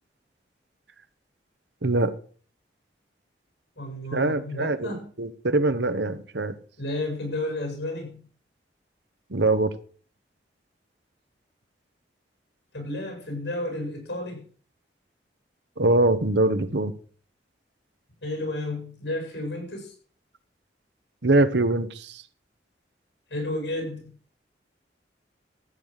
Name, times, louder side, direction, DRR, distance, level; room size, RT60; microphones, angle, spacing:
voice 1, 1.8-2.1 4.1-6.6 9.3-9.7 15.8-16.9 21.2-22.2, right 2 dB, 80° right, 1.3 m, -23 dB
voice 2, 3.8-5.1 6.8-8.2 12.7-14.4 18.2-19.9 23.3-24.1, left 1 dB, 85° left, 7.6 m, -32 dB
14.5 x 9.2 x 6.6 m
head